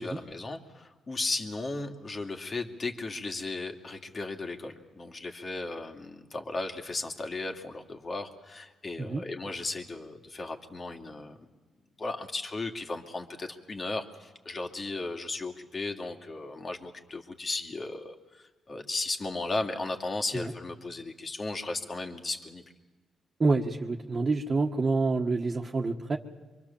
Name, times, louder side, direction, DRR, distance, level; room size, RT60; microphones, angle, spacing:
voice 1, 0.0-11.4 12.0-22.6, left 3 dB, 40° left, 4 dB, 2.7 m, -35 dB
voice 2, 23.4-26.2, right 3 dB, 35° right, -1 dB, 1.6 m, -27 dB
25.0 x 24.0 x 7.3 m, 1.3 s
supercardioid pair, 65°, 0 cm